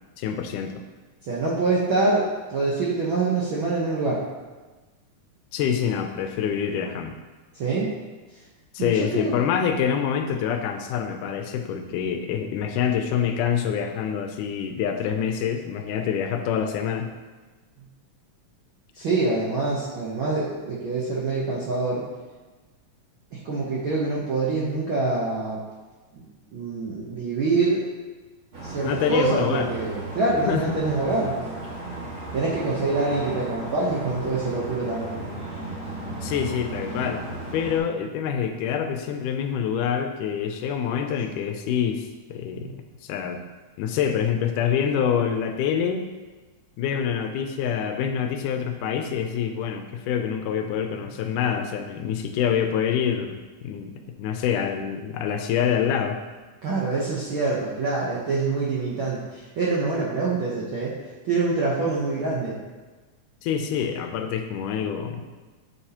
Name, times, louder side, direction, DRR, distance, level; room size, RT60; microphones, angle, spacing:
voice 1, 0.2-0.8 5.5-7.2 8.7-17.1 28.8-29.7 30.5-30.6 36.1-37.2 37.5-42.0 42.3-42.8 43.0-43.4 43.8-46.1 46.8-56.2 63.4-65.2, left 8 dB, 85° left, 6 dB, 2.2 m, -26 dB
voice 2, 1.2-4.2 7.6-7.9 8.8-9.4 18.9-22.0 23.3-25.6 26.1-26.3 26.5-27.8 28.6-31.3 32.3-35.3 42.5-42.7 56.6-60.9 61.2-62.6, right 3 dB, 75° right, -5 dB, 1.2 m, -25 dB
sound 1, 28.5-37.8, right 1 dB, 40° right, 3.4 m, -35 dB
8.0 x 7.2 x 2.9 m, 1.2 s
omnidirectional pair, 3.6 m